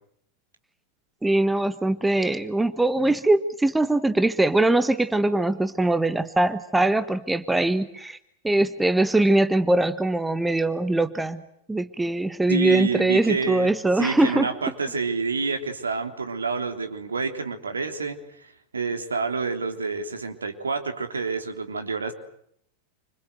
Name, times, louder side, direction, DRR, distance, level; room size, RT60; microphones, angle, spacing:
voice 1, 1.2-8.2 8.4-11.4 11.7-14.5, right 2 dB, 5° right, 12 dB, 1.4 m, -22 dB
voice 2, 12.5-22.1, right 4 dB, 75° right, 6 dB, 3.4 m, -28 dB
28.5 x 26.5 x 8.0 m, 0.73 s
figure-of-eight pair, 90°, 0 cm